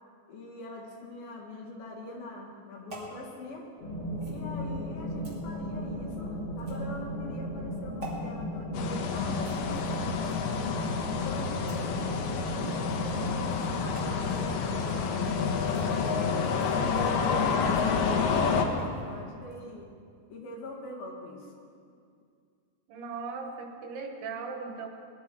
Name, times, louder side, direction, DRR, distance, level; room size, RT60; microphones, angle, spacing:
voice 1, 0.3-3.7 4.2-10.3 11.1-15.2 15.5-19.9 20.3-21.6, left 2 dB, 70° left, -3 dB, 4.0 m, -43 dB
sound 1, 2.9-3.1 4.2-4.4 5.2-5.4 6.6-7.0 8.0-8.2 9.4-10.6 11.3-11.9 12.9-13.1 13.5-13.7 13.9-14.5 14.8-19.0 19.4-19.6, right 2 dB, 25° right, 2.7 m, -48 dB
sound 2, 3.8-17.8, equal, 50° left, 5.5 m, -37 dB
sound 3, 8.7-18.7, left 5 dB, 85° left, 3.1 m, -29 dB
voice 2, 22.9-24.9, right 5 dB, 80° right, 3 dB, 3.4 m, -38 dB
20.0 x 12.0 x 4.6 m, 2.2 s
omnidirectional pair, 4.5 m